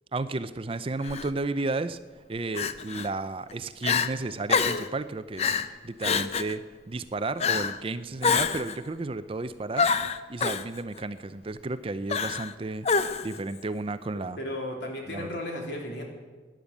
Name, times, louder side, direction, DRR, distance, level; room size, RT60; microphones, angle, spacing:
voice 1, 0.1-2.0 2.3-5.6 5.8-9.9 10.3-12.9 13.2-14.4 15.1-15.3, right 3 dB, 30° right, 13 dB, 0.5 m, -33 dB
Crying sobbing, 1.0-1.3 2.5-3.1 3.5-3.6 3.8-4.1 4.5-4.9 5.4-5.7 6.0-6.5 7.4-7.8 8.2-8.8 9.8-10.6 12.1-12.5 12.8-13.4, left 5 dB, 35° left, 0.6 m, -26 dB
voice 2, 14.4-16.0, left 1 dB, 75° left, 0 dB, 3.2 m, -34 dB
12.5 x 10.5 x 8.3 m, 1.4 s
head